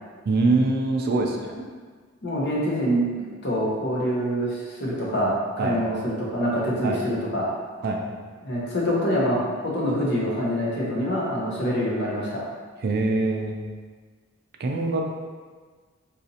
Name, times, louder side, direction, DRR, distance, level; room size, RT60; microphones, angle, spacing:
voice 1, 0.3-1.5 5.6-5.8 6.8-7.0 7.8-8.0 12.8-13.6 14.6-15.1, right 3 dB, 50° right, 2 dB, 0.4 m, -23 dB
voice 2, 2.2-7.5 8.4-12.4, equal, 55° left, -4 dB, 0.8 m, -25 dB
4.0 x 2.5 x 2.7 m, 1.5 s
head